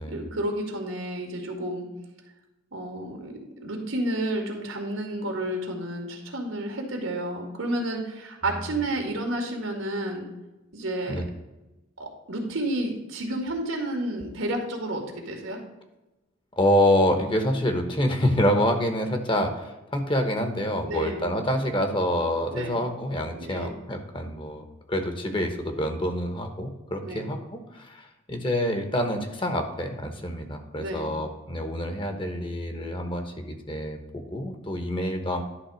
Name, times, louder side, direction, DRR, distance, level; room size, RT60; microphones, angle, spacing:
voice 1, 0.1-1.9 2.7-10.3 10.7-11.2 12.0-15.6 20.8-21.2 22.5-22.7 23.3-23.7 27.0-27.2 30.8-31.1, right 1 dB, 85° right, 3 dB, 2.1 m, -31 dB
voice 2, 16.6-35.4, left 1 dB, 25° left, 6 dB, 1.1 m, -27 dB
11.0 x 3.7 x 6.2 m, 1.0 s
head